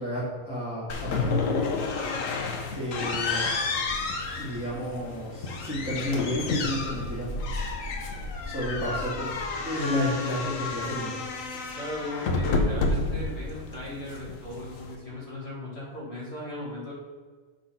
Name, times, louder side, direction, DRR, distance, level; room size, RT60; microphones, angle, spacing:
voice 1, 0.0-1.6 2.7-3.4 4.4-7.3 7.6-7.9 8.4-9.3 9.6-11.2, equal, 5° right, -6 dB, 1.8 m, -31 dB
sound 1, 0.9-14.9, left 3 dB, 70° left, 1.2 m, -30 dB
voice 2, 11.8-16.9, left 1 dB, 50° left, -6 dB, 2.0 m, -37 dB
7.6 x 3.8 x 5.7 m, 1.5 s
omnidirectional pair, 1.5 m